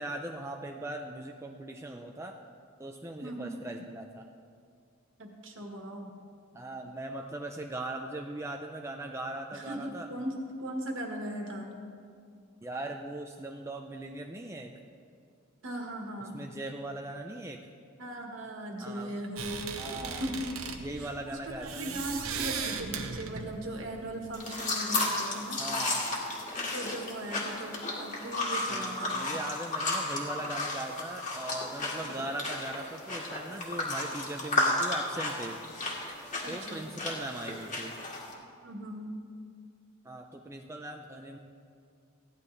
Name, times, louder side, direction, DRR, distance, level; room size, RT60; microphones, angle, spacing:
voice 1, 0.0-2.3 2.8-4.2 6.5-10.1 12.6-14.8 16.3-17.6 18.8-19.1 19.8-20.3 20.8-22.0 25.6-26.2 28.7-35.6 36.5-38.0 40.0-41.4, right 1 dB, 15° right, 2 dB, 0.4 m, -39 dB
voice 2, 3.2-3.6 5.2-6.1 9.5-11.7 15.6-16.4 18.0-20.6 21.0-25.6 26.1-26.3 26.7-29.4 36.4-36.9 38.6-39.1, right 1 dB, 60° right, 1 dB, 1.6 m, -38 dB
sound 1, 19.4-24.4, right 5 dB, 80° right, 0.9 m, -38 dB
sound 2, 24.3-38.3, left 2 dB, 35° left, 2.0 m, -33 dB
16.0 x 11.0 x 3.3 m, 2.3 s
head